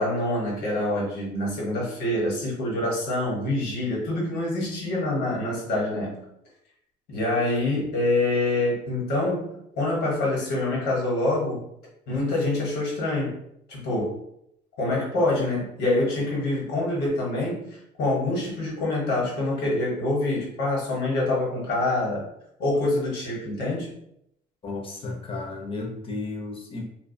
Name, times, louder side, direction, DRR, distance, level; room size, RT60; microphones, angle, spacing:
voice 1, 0.0-6.2 7.1-9.5 9.8-11.6 12.1-13.3 13.7-14.2 14.8-22.2 22.6-23.9, left 2 dB, 80° left, -4 dB, 1.1 m, -26 dB
voice 2, 24.6-26.8, left 3 dB, 35° left, 1 dB, 0.6 m, -33 dB
2.3 x 2.2 x 2.5 m, 0.76 s
cardioid pair, 110°, 17 cm